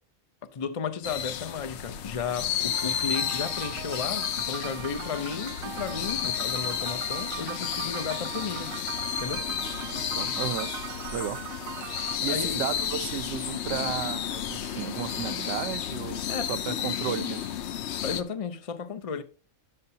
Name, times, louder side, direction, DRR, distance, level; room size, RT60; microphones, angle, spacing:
voice 1, 0.5-8.8 9.2-9.5 12.3-12.6 16.3-16.5 18.0-19.2, left 6 dB, 45° left, 0.5 m, -34 dB
sound 1, 1.0-18.2, left 9 dB, 65° left, 0.8 m, -32 dB
sound 2, 2.7-12.2, right 11 dB, 90° right, 1.0 m, -40 dB
voice 2, 9.9-10.7 11.1-11.4 12.0-17.5, right 11 dB, 65° right, 0.8 m, -34 dB
11.0 x 7.5 x 2.7 m
omnidirectional pair, 1.4 m